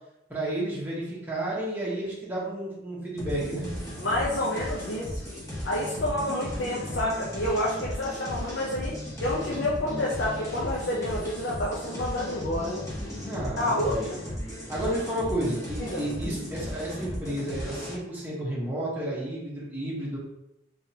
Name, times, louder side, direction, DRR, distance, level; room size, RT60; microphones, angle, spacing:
voice 1, 0.3-3.7 13.3-14.1 14.7-20.2, right 1 dB, 10° right, -7 dB, 1.2 m, -31 dB
sound 1, 3.2-18.0, equal, 15° left, 1.0 m, -36 dB
voice 2, 4.0-5.2 5.6-12.9 13.6-14.2 15.8-16.0, left 1 dB, 65° left, -5 dB, 0.8 m, -29 dB
3.7 x 3.5 x 2.9 m, 0.87 s
head